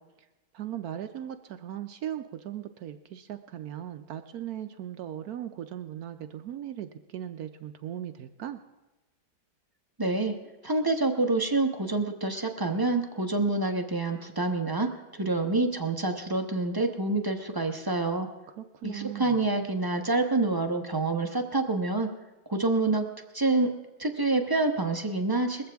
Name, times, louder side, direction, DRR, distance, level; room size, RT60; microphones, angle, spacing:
voice 1, 0.5-8.6 18.6-19.5, right 11 dB, 70° right, 9 dB, 1.0 m, -38 dB
voice 2, 10.0-10.3 10.6-18.3 18.8-22.1 22.5-23.1 23.3-23.7 24.0-25.7, right 2 dB, 20° right, 4 dB, 0.6 m, -27 dB
21.0 x 14.5 x 3.5 m, 1.1 s
omnidirectional pair, 1.9 m